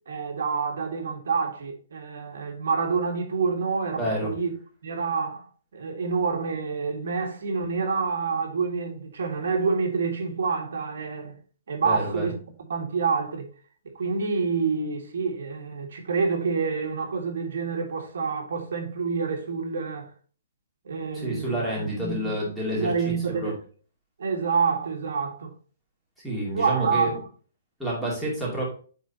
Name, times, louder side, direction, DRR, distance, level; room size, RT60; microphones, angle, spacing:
voice 1, 0.1-4.5 4.8-5.5 5.7-11.4 11.7-12.3 12.7-13.5 13.9-20.1 20.8-22.4 22.7-23.6 24.2-25.5 26.5-27.2, right 5 dB, 70° right, 1.7 m, -27 dB
voice 2, 4.0-4.3 11.8-12.3 21.1-22.9 23.3-23.5 26.2-27.1 27.8-28.6, right 1 dB, ahead, 2.4 m, -29 dB
9.2 x 4.0 x 2.7 m
hypercardioid pair, 170°, 0 cm